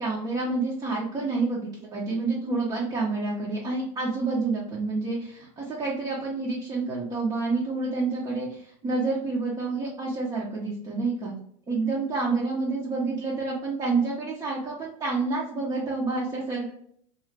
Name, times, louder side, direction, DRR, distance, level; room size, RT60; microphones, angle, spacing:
voice 1, 0.0-11.3 11.7-16.7, right 3 dB, 25° right, -4 dB, 0.7 m, -28 dB
2.5 x 2.4 x 3.1 m, 0.64 s
supercardioid pair, 115°, 17 cm